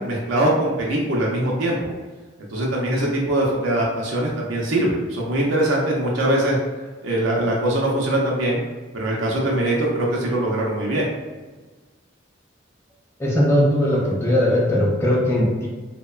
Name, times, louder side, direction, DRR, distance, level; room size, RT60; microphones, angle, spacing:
voice 1, 0.0-1.8 2.5-6.6 7.0-8.6 8.9-11.1, right 1 dB, 75° right, -3 dB, 0.5 m, -22 dB
voice 2, 13.2-15.7, left 1 dB, 15° left, -4 dB, 0.4 m, -19 dB
2.7 x 2.1 x 2.3 m, 1.3 s
head